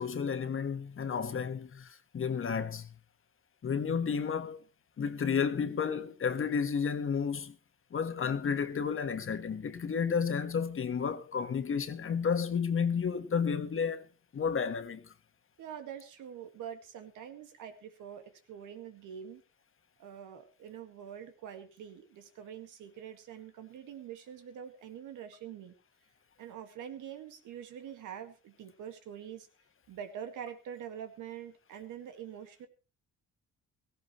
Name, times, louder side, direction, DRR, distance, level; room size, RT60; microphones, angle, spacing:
voice 1, 0.0-2.9 3.6-4.6 5.0-7.5 7.9-14.0 14.3-15.0, left 6 dB, 45° left, 1.5 m, -32 dB
voice 2, 15.6-19.4 20.0-25.7 26.4-29.5 29.9-32.7, right 9 dB, 85° right, 2.0 m, -45 dB
17.0 x 16.0 x 3.2 m
cardioid pair, 90°, 30 cm